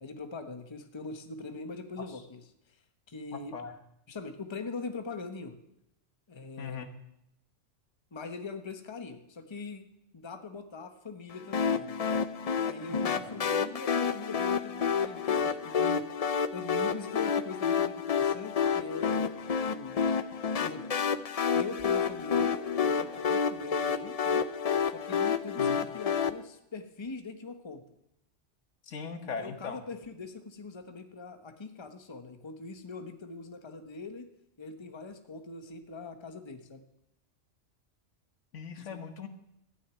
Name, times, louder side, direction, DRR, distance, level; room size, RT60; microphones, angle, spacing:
voice 1, 0.0-2.5 3.1-3.6 4.1-5.6 6.3-6.8 8.1-9.9 10.1-12.0 12.6-16.1 16.5-19.9 20.6-20.9 21.5-24.4 24.9-27.8 29.2-34.3 34.6-36.8 38.8-39.0, left 3 dB, 25° left, 7 dB, 1.0 m, -42 dB
voice 2, 3.3-3.8 6.6-6.9 12.9-13.2 25.6-25.8 28.8-29.8 38.5-39.3, left 5 dB, 75° left, 7 dB, 1.5 m, -39 dB
sound 1, 11.5-26.3, left 6 dB, 50° left, 0.5 m, -29 dB
14.0 x 6.5 x 9.3 m, 0.81 s
omnidirectional pair, 1.3 m